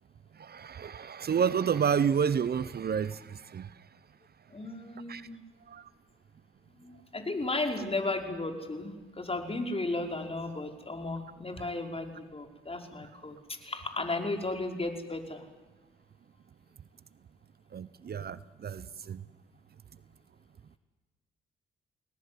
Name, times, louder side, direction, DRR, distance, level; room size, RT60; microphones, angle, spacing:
voice 1, 0.4-3.7 5.1-5.3 5.7-5.8 17.7-19.2, right 7 dB, 50° right, 16 dB, 1.0 m, -30 dB
voice 2, 4.5-5.4 6.8-15.4, left 2 dB, 25° left, 3 dB, 5.3 m, -35 dB
30.0 x 19.0 x 9.6 m, 1.3 s
hypercardioid pair, 50°, 21 cm